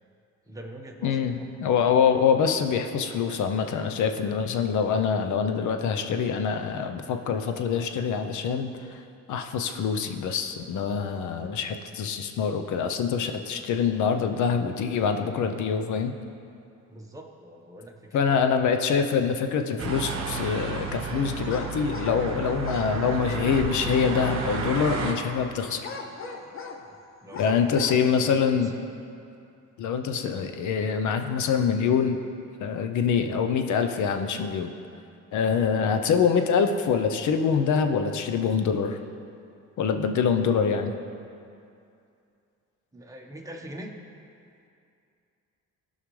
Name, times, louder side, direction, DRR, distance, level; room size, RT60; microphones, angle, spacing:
voice 1, 0.5-1.5 16.9-18.5 27.2-28.3 35.5-35.7 42.9-43.9, right 1 dB, 10° right, 0 dB, 1.2 m, -42 dB
voice 2, 1.0-9.0 9.3-16.1 18.1-25.9 27.3-28.7 29.8-32.2 32.6-34.7 35.3-39.0 39.8-40.9, left 6 dB, 75° left, 6 dB, 0.8 m, -25 dB
sound 1, 19.8-25.1, right 5 dB, 45° right, 1.3 m, -32 dB
sound 2, 21.5-22.2 22.6-22.9 25.8-26.8 27.3-28.0, left 4 dB, 45° left, 0.8 m, -38 dB
16.0 x 5.6 x 3.2 m, 2.5 s
cardioid pair, 95°, 30 cm